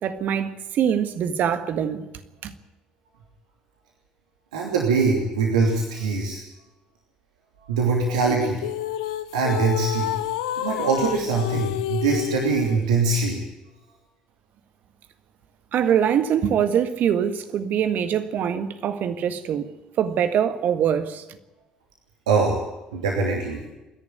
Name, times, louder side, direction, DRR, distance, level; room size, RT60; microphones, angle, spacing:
voice 1, 0.0-2.1 2.4-2.5 15.7-21.2, right 8 dB, 60° right, 1.7 m, -23 dB
voice 2, 4.5-6.4 7.7-8.6 9.3-10.1 10.6-13.4 22.3-22.6 22.9-23.6, right 4 dB, 85° right, 2.8 m, -22 dB
sound 1, 8.2-12.8, left 12 dB, 80° left, 0.8 m, -29 dB
27.0 x 11.0 x 9.3 m
hypercardioid pair, 55°, 3 cm